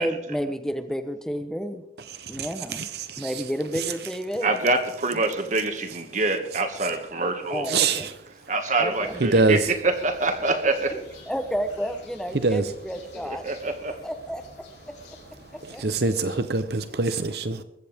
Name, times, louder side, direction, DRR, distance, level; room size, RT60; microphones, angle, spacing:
voice 1, 0.0-1.8 2.3-2.9 3.2-4.5 5.1-5.3 7.5-8.1 8.8-9.2 10.9-11.0 11.3-13.4 14.0-14.9 15.5-15.9, equal, 5° left, 0.9 m, -31 dB
voice 2, 2.2-3.3 7.7-8.1 9.2-9.6 12.4-12.6 15.7-17.6, right 3 dB, 65° right, 0.8 m, -24 dB
voice 3, 4.4-7.7 8.5-11.0 13.2-14.0, right 3 dB, 45° right, 2.0 m, -25 dB
sound 1, 8.9-16.4, left 2 dB, 85° left, 5.3 m, -49 dB
21.5 x 15.0 x 3.6 m
head